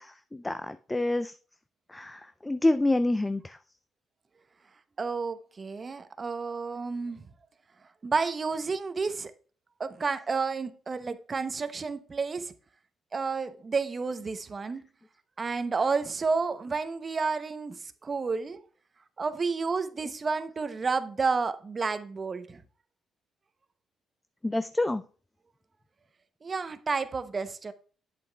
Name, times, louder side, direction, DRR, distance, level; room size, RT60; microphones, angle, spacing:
voice 1, 0.0-1.3 1.9-3.6 24.4-25.0, left 2 dB, 15° left, 0.4 m, -28 dB
voice 2, 5.0-7.3 8.0-9.3 9.8-12.5 13.1-14.8 15.4-18.6 19.2-22.6 26.4-27.7, right 4 dB, 35° right, 0.7 m, -31 dB
8.5 x 7.5 x 2.3 m
cardioid pair, 90°, 0 cm